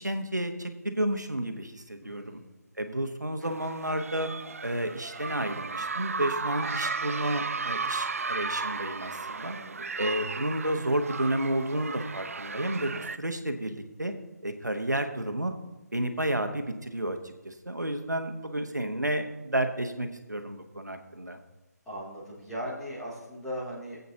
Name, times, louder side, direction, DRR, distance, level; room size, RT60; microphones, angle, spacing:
voice 1, 0.0-2.4 2.8-4.3 4.6-9.6 10.0-14.1 14.4-15.5 15.9-21.4, right 1 dB, 85° right, 6 dB, 1.3 m, -31 dB
voice 2, 2.0-2.5 9.3-9.9 21.9-24.0, equal, 5° left, -10 dB, 2.7 m, -39 dB
sound 1, 3.4-13.2, right 4 dB, 55° right, 0.4 m, -35 dB
24.0 x 8.3 x 2.9 m, 1.1 s
figure-of-eight pair, 150°, 9 cm